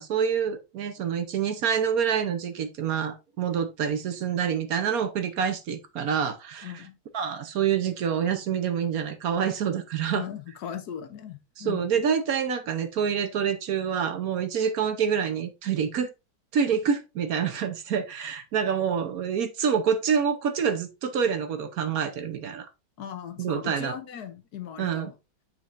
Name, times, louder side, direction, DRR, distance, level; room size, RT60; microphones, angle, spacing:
voice 1, 0.0-6.7 7.1-10.2 11.6-16.1 16.5-22.7 23.4-24.0 24.8-25.1, right 7 dB, 60° right, 1.1 m, -27 dB
voice 2, 6.6-7.0 10.1-11.9 23.0-25.1, left 9 dB, 60° left, 1.1 m, -38 dB
7.2 x 6.1 x 2.5 m
omnidirectional pair, 2.2 m